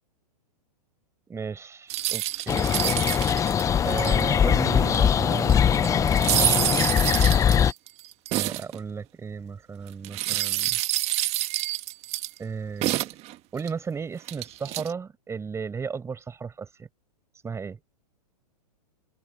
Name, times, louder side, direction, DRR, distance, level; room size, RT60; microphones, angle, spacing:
voice 1, 1.3-2.7 3.8-6.7 8.3-10.8 12.4-13.1 13.5-16.9 17.4-17.8, right 5 dB, 15° right, 5.2 m, -34 dB
sound 1, 1.9-4.4 4.9-5.0 5.3-8.8 10.0-12.4 12.8-13.7 14.3-14.9, right 16 dB, 30° right, 2.0 m, -27 dB
sound 2, 2.5-7.7, left 8 dB, 15° left, 0.9 m, -21 dB
hypercardioid pair, 125°, 21 cm